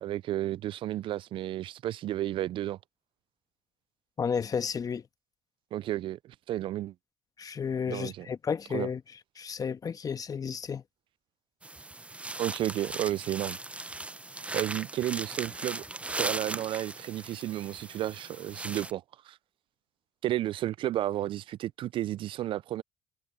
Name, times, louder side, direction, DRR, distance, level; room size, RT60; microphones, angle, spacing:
voice 1, 0.0-2.8 5.7-6.9 7.9-8.3 8.7-8.9 12.4-13.6 14.5-19.4 20.2-22.8, right 14 dB, 55° right, 0.4 m, -32 dB
voice 2, 4.2-5.0 7.4-9.0 9.4-10.8, left 6 dB, 35° left, 1.3 m, -32 dB
sound 1, 11.6-18.9, right 2 dB, 10° right, 0.6 m, -38 dB
supercardioid pair, 75°, 11 cm